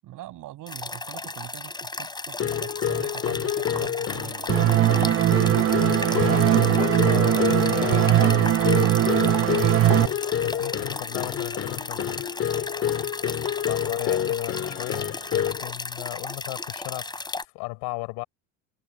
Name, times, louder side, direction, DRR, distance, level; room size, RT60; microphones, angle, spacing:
voice 1, 0.0-5.1 6.1-6.6, right 15 dB, 50° right, 7.6 m, -41 dB
sound 1, 0.7-17.4, left 3 dB, 10° left, 4.4 m, -35 dB
sound 2, 2.4-15.7, left 10 dB, 35° left, 2.1 m, -28 dB
sound 3, 4.5-10.1, right 12 dB, 35° right, 1.1 m, -20 dB
voice 2, 6.2-9.0 10.4-12.2 13.7-18.2, left 27 dB, 70° left, 4.9 m, -36 dB
supercardioid pair, 115°, 39 cm